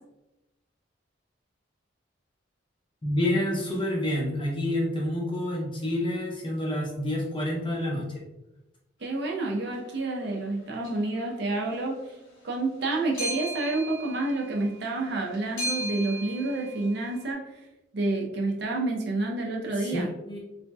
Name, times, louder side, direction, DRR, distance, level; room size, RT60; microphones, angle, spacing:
voice 1, 3.0-8.1 19.8-20.4, left 1 dB, 25° left, -2 dB, 0.7 m, -28 dB
voice 2, 9.0-11.9 12.4-17.4 17.9-20.1, right 2 dB, 55° right, 0 dB, 0.6 m, -29 dB
sound 1, 9.6-9.7 10.8-11.2 11.5-17.3, right 1 dB, 90° left, 0.9 m, -38 dB
4.1 x 2.7 x 2.2 m, 0.96 s
head